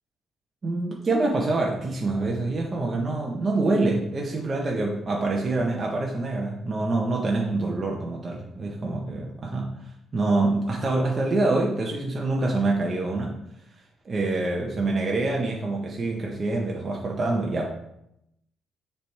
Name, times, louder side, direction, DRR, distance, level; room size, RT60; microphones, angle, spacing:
voice 1, 0.6-9.7 10.1-13.3 14.0-17.7, right 2 dB, 35° right, -1 dB, 0.9 m, -26 dB
6.7 x 3.5 x 4.5 m, 0.82 s
cardioid pair, 90°, 0 cm